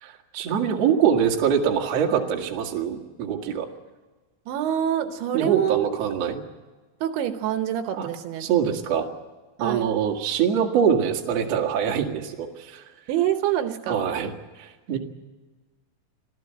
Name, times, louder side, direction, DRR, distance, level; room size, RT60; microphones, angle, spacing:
voice 1, 0.0-3.7 5.3-6.4 8.0-8.1 8.4-9.1 9.6-12.9 13.9-14.3 14.6-15.0, right 8 dB, 45° right, 2 dB, 2.2 m, -24 dB
voice 2, 4.5-5.9 7.0-8.5 9.6-9.9 13.1-14.1, right 10 dB, 75° right, 8 dB, 3.1 m, -26 dB
26.0 x 15.5 x 7.8 m, 1.2 s
omnidirectional pair, 5.6 m